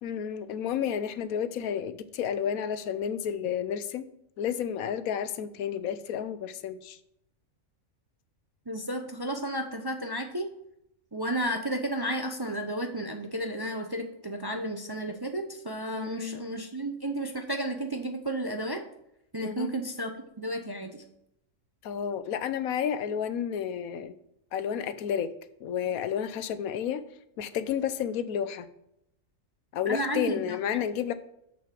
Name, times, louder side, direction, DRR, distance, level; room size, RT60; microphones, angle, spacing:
voice 1, 0.0-4.1 4.4-7.0 15.9-16.4 19.4-19.7 21.8-24.1 24.5-25.3 25.6-27.0 27.4-28.7 29.7-31.1, left 8 dB, 85° left, 13 dB, 1.1 m, -31 dB
voice 2, 8.7-10.5 11.1-18.8 19.3-20.1 20.4-21.0 29.9-30.6, right 1 dB, 25° right, 4 dB, 0.5 m, -32 dB
7.0 x 6.2 x 5.8 m, 0.80 s
omnidirectional pair, 1.5 m